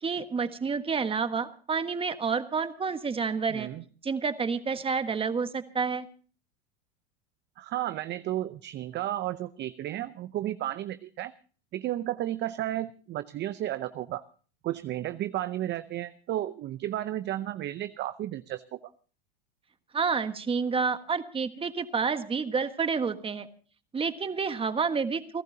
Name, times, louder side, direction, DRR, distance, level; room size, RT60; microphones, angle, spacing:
voice 1, 0.0-3.7 4.0-6.1 19.9-23.5 23.9-25.4, right 5 dB, 20° right, 10 dB, 1.5 m, -29 dB
voice 2, 3.5-3.8 7.6-11.3 11.7-14.2 14.6-18.9, right 13 dB, 35° right, 13 dB, 0.7 m, -33 dB
29.5 x 12.0 x 2.8 m, 0.39 s
hypercardioid pair, 110°, 31 cm